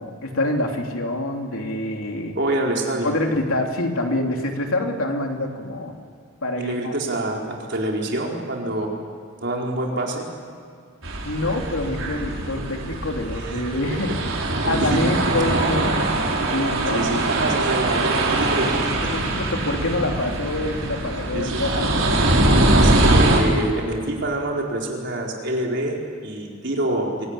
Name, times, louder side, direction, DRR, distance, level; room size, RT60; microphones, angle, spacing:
voice 1, 0.0-2.4 3.0-5.9 6.4-6.9 11.2-14.3 14.6-16.1 16.5-17.1 19.1-22.1, left 1 dB, 90° left, 2 dB, 3.2 m, -26 dB
voice 2, 2.4-3.1 6.6-8.9 9.4-10.3 13.3-14.1 14.6-15.3 16.9-19.1 21.3-21.6 22.7-27.3, right 1 dB, 55° right, -1 dB, 4.5 m, -26 dB
sound 1, 11.0-23.4, right 2 dB, 75° right, 4.5 m, -22 dB
25.0 x 18.0 x 9.9 m, 2.3 s
head